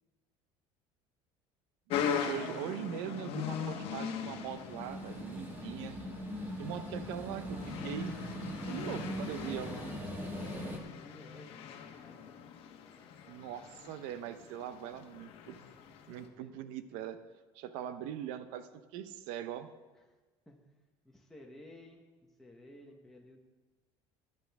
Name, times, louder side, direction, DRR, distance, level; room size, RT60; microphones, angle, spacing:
sound 1, 1.9-16.3, left 8 dB, 55° left, 1.3 m, -41 dB
voice 1, 2.1-6.0 6.6-7.6 7.8-9.7 13.3-15.6 16.1-17.2 17.5-19.7, right 10 dB, 85° right, 11 dB, 0.8 m, -41 dB
sound 2, 4.3-10.8, equal, 20° right, 1.7 m, -41 dB
voice 2, 9.4-12.4 16.1-17.0 20.1-20.2 20.5-20.6 21.0-22.0 22.4-23.4, left 1 dB, 5° left, -1 dB, 1.1 m, -55 dB
16.5 x 10.5 x 3.5 m, 1.3 s
cardioid pair, 150°, 11 cm